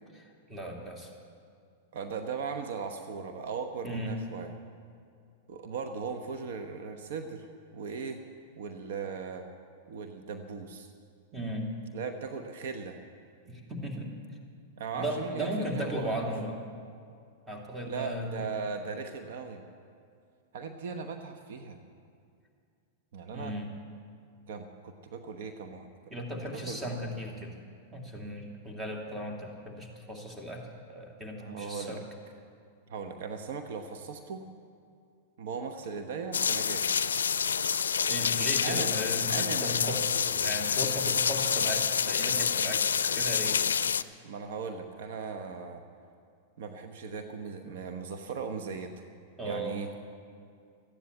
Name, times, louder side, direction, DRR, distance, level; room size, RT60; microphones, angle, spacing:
voice 1, 0.5-1.1 3.8-4.1 11.3-11.7 13.5-14.1 14.9-16.5 17.5-18.5 23.3-23.7 26.1-27.5 27.9-32.0 38.1-43.6 49.4-49.8, equal, 10° right, 0 dB, 2.7 m, -36 dB
voice 2, 1.9-4.5 5.5-7.5 7.7-8.2 8.6-9.5 9.9-10.9 11.9-13.0 14.8-16.2 17.8-19.6 20.5-21.8 23.1-23.5 24.5-25.9 26.5-26.8 31.4-32.0 32.9-34.5 35.4-36.8 38.6-38.9 39.3-39.9 44.2-45.8 46.6-49.0 49.4-49.9, right 5 dB, 70° right, 8 dB, 1.0 m, -38 dB
sound 1, 36.3-44.0, left 7 dB, 90° left, 0.4 m, -28 dB
14.0 x 9.8 x 8.4 m, 2.3 s
hypercardioid pair, 110°, 0 cm